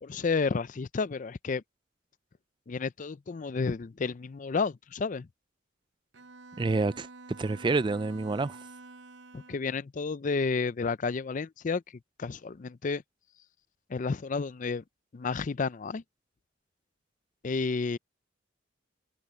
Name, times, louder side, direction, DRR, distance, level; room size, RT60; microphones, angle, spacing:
voice 1, 0.0-1.6 2.7-5.3 9.3-11.8 12.2-13.0 13.9-14.8 15.1-16.0 17.4-18.0, left 4 dB, 40° left, 0.4 m, -31 dB
Bowed string instrument, 6.1-9.8, right 3 dB, 65° right, 0.9 m, -49 dB
voice 2, 6.6-7.1 7.4-8.6, right 3 dB, 25° right, 0.3 m, -28 dB
head